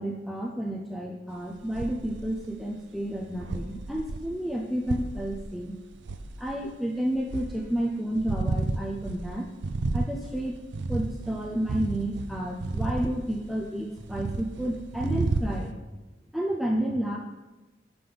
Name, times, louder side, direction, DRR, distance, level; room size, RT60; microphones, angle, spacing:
voice 1, 0.0-5.8 6.4-9.5 9.9-15.8 16.3-17.2, right 1 dB, ahead, -1 dB, 0.4 m, -31 dB
sound 1, 1.6-2.5 3.0-6.7 7.1-7.7 8.1-13.7 14.0-15.7, right 3 dB, 65° right, 0.4 m, -32 dB
5.9 x 5.5 x 3.3 m, 1.1 s
head